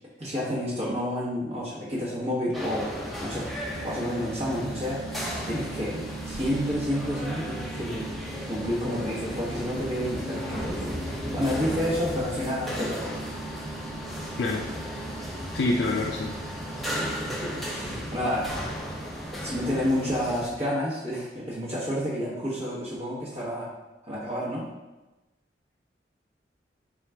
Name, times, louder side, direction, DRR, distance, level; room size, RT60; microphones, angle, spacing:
voice 1, 0.2-2.9 3.2-3.5 3.8-5.0 5.5-8.1 8.5-13.2 16.9-18.5 19.4-23.7 24.0-24.6, equal, 35° right, -8 dB, 1.0 m, -30 dB
sound 1, 2.5-20.5, equal, ahead, 0.6 m, -35 dB
sound 2, 3.7-19.2, right 7 dB, 55° right, 0.8 m, -45 dB
voice 2, 15.5-16.4, left 2 dB, 70° left, -1 dB, 0.4 m, -26 dB
4.6 x 2.4 x 3.3 m, 1.1 s
head